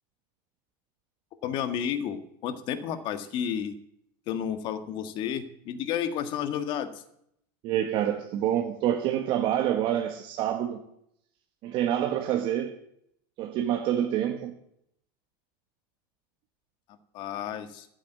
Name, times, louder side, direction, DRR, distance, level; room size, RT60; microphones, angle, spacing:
voice 1, 1.4-3.8 4.3-6.9 17.1-17.9, left 9 dB, 45° left, 1.7 m, -31 dB
voice 2, 7.6-10.8 11.6-12.8 13.4-14.5, right 11 dB, 50° right, 1.4 m, -27 dB
14.0 x 8.3 x 9.1 m
supercardioid pair, 140°, 11 cm